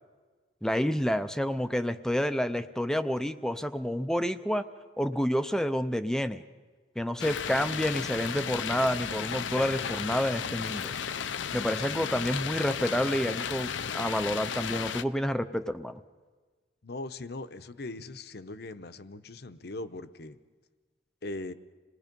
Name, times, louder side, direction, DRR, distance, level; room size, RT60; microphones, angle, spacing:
voice 1, 0.6-4.6 5.0-6.4 7.0-10.9 11.5-16.0, equal, 5° left, 10 dB, 0.5 m, -29 dB
sound 1, 7.2-15.0, left 7 dB, 85° left, 0.6 m, -34 dB
voice 2, 16.8-20.4 21.2-21.5, left 2 dB, 60° left, 11 dB, 0.9 m, -40 dB
27.5 x 19.0 x 5.3 m, 1.4 s
head